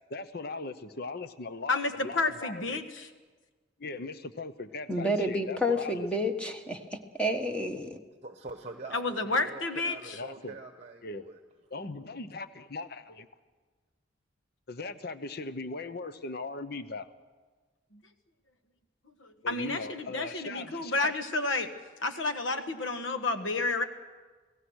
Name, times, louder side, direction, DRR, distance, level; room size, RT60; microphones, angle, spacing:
voice 1, 0.1-2.8 3.8-6.1 10.0-10.6 11.0-11.3 11.7-13.3 14.7-17.1 19.4-21.1, left 3 dB, 55° left, 12 dB, 0.9 m, -39 dB
voice 2, 1.7-3.1 8.9-10.2 17.9-18.0 19.2-21.7 22.0-23.8, left 3 dB, 85° left, 8 dB, 1.4 m, -30 dB
voice 3, 4.9-8.0, left 1 dB, 5° left, 5 dB, 1.3 m, -30 dB
voice 4, 8.2-11.4, right 3 dB, 35° right, 6 dB, 1.0 m, -44 dB
28.0 x 17.5 x 6.4 m, 1.4 s
head